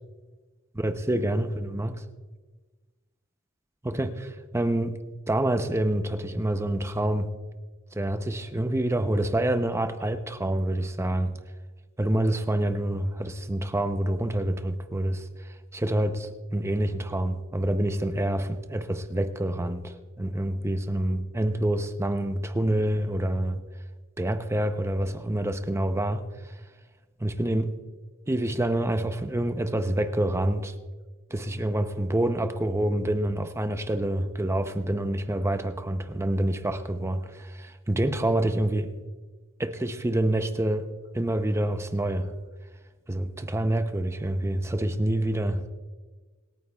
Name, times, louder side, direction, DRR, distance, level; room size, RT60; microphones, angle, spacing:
voice 1, 0.8-2.0 3.8-4.1 4.5-5.0 5.3-7.3 7.9-11.4 12.0-23.6 24.2-26.6 27.2-27.7 28.3-30.7 31.3-38.9 39.6-40.9 41.1-42.3 43.1-45.7, right 1 dB, 15° right, 0.6 m, -27 dB
26.5 x 9.3 x 2.3 m
head